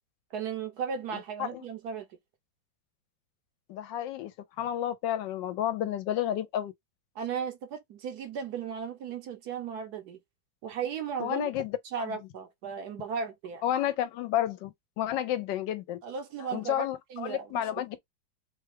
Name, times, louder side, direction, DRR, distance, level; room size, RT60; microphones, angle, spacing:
voice 1, 0.3-2.1 7.2-10.2 10.6-11.5 11.9-13.6 16.0-17.6, right 6 dB, 65° right, 1.1 m, -36 dB
voice 2, 3.7-4.3 4.6-6.7 11.2-11.7 12.0-12.1 13.6-16.0 16.5-18.0, left 11 dB, 80° left, 1.2 m, -31 dB
3.3 x 2.2 x 3.2 m
omnidirectional pair, 2.0 m